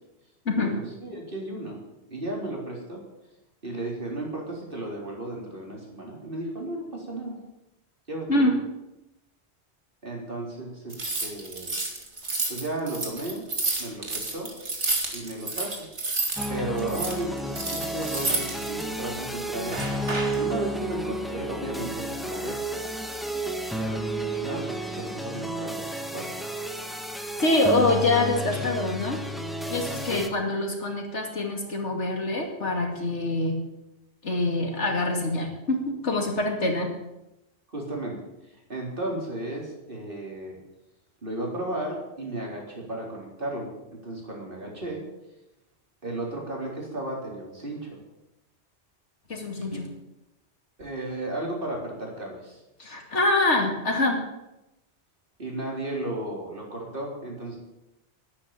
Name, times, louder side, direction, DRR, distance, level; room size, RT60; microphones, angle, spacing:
voice 1, 0.5-1.8 2.1-3.0 3.6-7.4 8.1-8.5 10.0-11.7 12.5-13.5 13.8-14.5 15.1-16.2 16.5-22.6 23.7-26.3 28.5-28.6 29.7-30.2 37.7-38.2 38.7-40.6 41.2-43.7 44.0-45.0 46.0-47.9 49.7-49.8 50.8-52.6 55.4-57.6, right 1 dB, 50° right, -1 dB, 4.1 m, -34 dB
sound 1, 10.9-16.5 16.8-18.8 19.7-20.4, right 3 dB, 85° right, 2.7 m, -30 dB
sound 2, 16.4-30.3, right 1 dB, ahead, 1.2 m, -32 dB
voice 2, 27.4-29.2 29.7-33.6 34.2-36.9 49.3-49.8 52.8-54.2, left 2 dB, 85° left, 2 dB, 2.8 m, -25 dB
11.5 x 9.6 x 9.1 m, 0.93 s
omnidirectional pair, 1.2 m